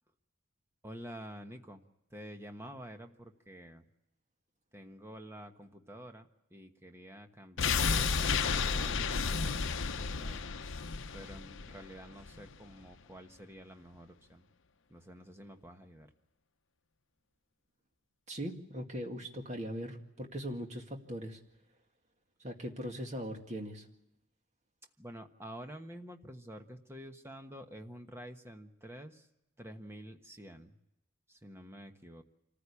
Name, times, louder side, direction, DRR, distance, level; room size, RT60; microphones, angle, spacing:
voice 1, 0.8-1.8 2.1-3.8 4.7-10.4 11.1-14.4 14.9-16.1 25.0-29.3 29.6-30.8 31.3-32.2, equal, 10° right, 5 dB, 1.3 m, -49 dB
sound 1, 7.6-12.5 12.8-12.9, left 5 dB, 70° left, 0.8 m, -32 dB
voice 2, 18.3-21.4 22.4-23.9, equal, 35° right, 3 dB, 2.1 m, -40 dB
26.0 x 15.0 x 8.4 m, 0.90 s
head